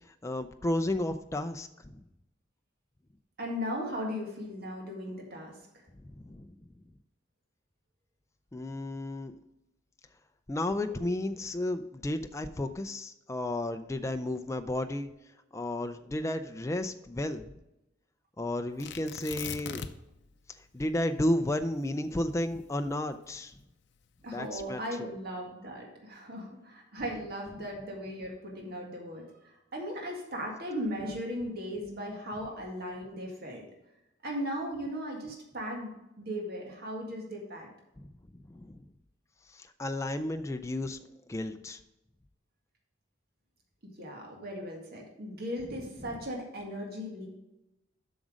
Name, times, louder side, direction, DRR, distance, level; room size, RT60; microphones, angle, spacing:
voice 1, 0.2-2.0 6.2-6.5 8.5-9.3 10.5-15.1 15.5-17.5 18.4-19.8 20.7-23.5 24.3-25.1 38.0-38.1 38.5-38.8 39.5-41.0 41.3-41.8 46.0-46.1, left 1 dB, 15° left, 8 dB, 0.4 m, -33 dB
voice 2, 3.4-5.5 24.2-33.6 34.2-37.7 44.0-47.3, equal, 55° right, 0 dB, 1.9 m, -37 dB
Tearing, 18.8-20.2 20.5-20.6 21.1-23.5 24.2-24.6, left 7 dB, 65° left, 0.6 m, -41 dB
7.8 x 6.2 x 5.0 m, 0.91 s
head